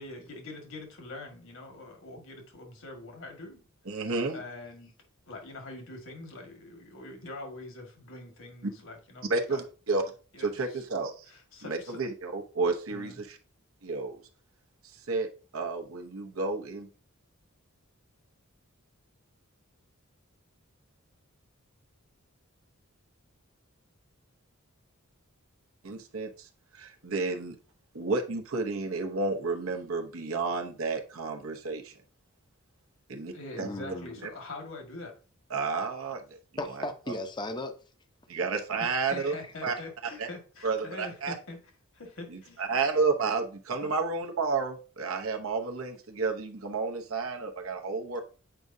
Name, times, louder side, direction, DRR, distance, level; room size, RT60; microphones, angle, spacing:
voice 1, 0.0-3.6 4.3-4.9 5.3-9.6 10.3-10.8 11.3-12.0 12.9-13.2 33.3-35.1 35.8-35.9 38.8-41.6 41.9-42.6 43.8-43.9, left 2 dB, 65° left, 1.7 m, -44 dB
voice 2, 3.8-4.4 8.6-8.7 9.3-10.0 10.4-11.3 11.6-13.4 13.8-14.2 15.1-15.3 15.5-16.9 25.8-27.6 27.9-31.9 33.1-33.7 34.2-34.3 35.5-36.4 38.3-39.3 39.6-39.7 40.2-40.3 40.6-41.3 42.3-48.2, right 4 dB, 75° right, 0.9 m, -31 dB
voice 3, 33.5-34.2 36.6-37.7 39.0-39.3, left 2 dB, 20° left, 0.7 m, -36 dB
7.8 x 4.8 x 2.7 m
head